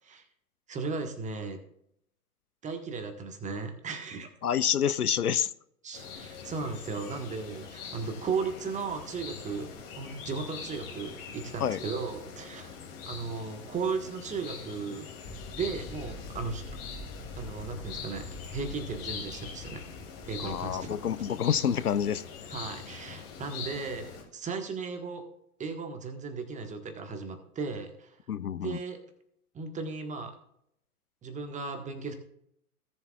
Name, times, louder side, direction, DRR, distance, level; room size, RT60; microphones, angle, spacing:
voice 1, 0.7-1.6 2.6-4.3 5.8-12.7 13.0-15.1 15.5-16.6 17.4-19.8 20.2-20.9 22.5-25.2 25.6-28.2 28.6-29.0 29.5-30.4 31.2-32.1, right 4 dB, 15° right, 7 dB, 1.4 m, -36 dB
voice 2, 4.4-5.5 11.6-11.8 20.4-22.2 28.3-28.8, left 8 dB, 85° left, 17 dB, 0.6 m, -28 dB
sound 1, 5.9-24.2, left 6 dB, 40° left, 2.7 m, -43 dB
sound 2, 15.2-21.3, left 1 dB, 20° left, 1.4 m, -46 dB
18.0 x 7.2 x 2.4 m, 0.73 s
figure-of-eight pair, 100°, 44 cm